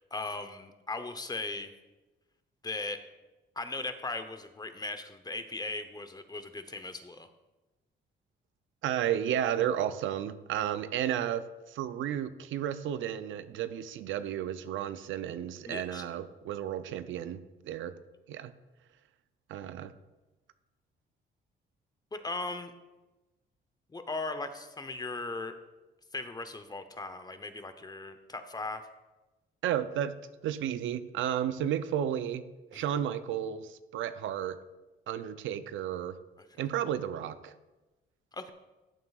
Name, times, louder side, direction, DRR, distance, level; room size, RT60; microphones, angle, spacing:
voice 1, 0.0-1.7 2.6-3.0 3.6-7.3 15.6-16.0 22.1-22.7 23.9-25.5 26.1-28.8 32.7-32.8 38.3-38.5, left 3 dB, 20° left, 9 dB, 0.8 m, -38 dB
voice 2, 8.8-17.9 18.3-18.5 19.5-19.9 29.6-30.2 30.4-32.4 32.7-34.6 35.1-36.2 36.6-37.5, right 10 dB, 75° right, 12 dB, 0.5 m, -33 dB
14.5 x 7.6 x 2.4 m, 1.1 s
cardioid pair, 90°, 20 cm